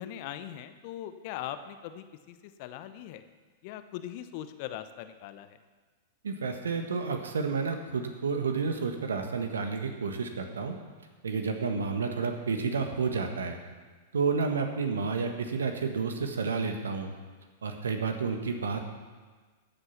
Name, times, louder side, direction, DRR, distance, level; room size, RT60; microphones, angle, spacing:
voice 1, 0.0-3.2 3.6-5.6, left 11 dB, 50° left, 11 dB, 0.9 m, -40 dB
voice 2, 6.2-10.8 11.2-13.6 14.1-17.1 17.6-18.8, right 5 dB, 75° right, 5 dB, 1.5 m, -30 dB
13.5 x 8.0 x 5.9 m, 1.4 s
figure-of-eight pair, 100°, 0 cm